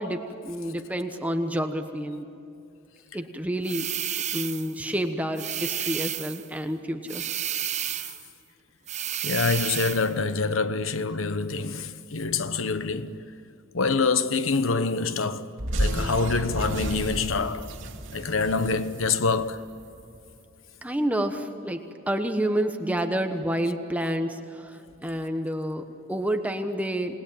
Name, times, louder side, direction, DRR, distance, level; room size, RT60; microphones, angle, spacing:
voice 1, 0.0-2.4 3.1-3.9 4.3-7.2 20.8-27.1, right 1 dB, 10° right, 1.1 m, -29 dB
sound 1, 3.6-4.8 5.4-6.5 7.1-8.3 8.9-10.1, right 10 dB, 35° right, 0.7 m, -31 dB
voice 2, 9.2-13.2 13.7-15.5 15.8-17.7 18.1-19.6, left 4 dB, 90° left, 1.1 m, -26 dB
sound 2, 15.6-20.0, right 1 dB, 70° right, 2.8 m, -31 dB
28.0 x 20.0 x 9.2 m
head